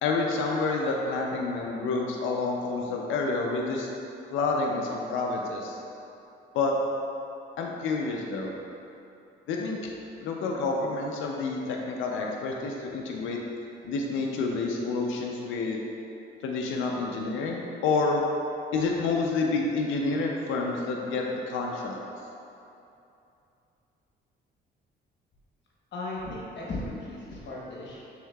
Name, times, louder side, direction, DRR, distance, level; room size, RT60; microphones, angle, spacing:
voice 1, 0.0-3.9 4.3-5.8 6.5-6.8 7.6-8.5 9.5-9.9 10.2-13.4 13.8-15.8 16.4-18.2 18.7-22.0, left 3 dB, 85° left, 0 dB, 0.5 m, -28 dB
voice 2, 25.9-28.0, left 2 dB, 65° left, -5 dB, 1.1 m, -36 dB
6.3 x 3.6 x 2.3 m, 2.8 s
cardioid pair, 90°, 20 cm